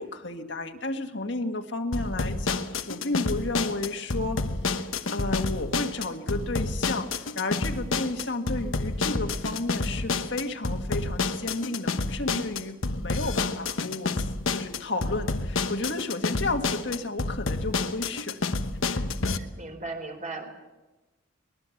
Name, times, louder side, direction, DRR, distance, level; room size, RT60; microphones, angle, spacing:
voice 1, 0.0-4.4 4.7-4.8 5.1-14.2 14.5-18.4 18.8-19.0, left 2 dB, 60° left, 4 dB, 1.7 m, -32 dB
sound 1, 1.9-19.4, left 3 dB, 85° left, 1.2 m, -29 dB
voice 2, 19.4-20.5, right 3 dB, 40° right, 4 dB, 4.1 m, -37 dB
23.5 x 20.5 x 7.1 m, 1.1 s
head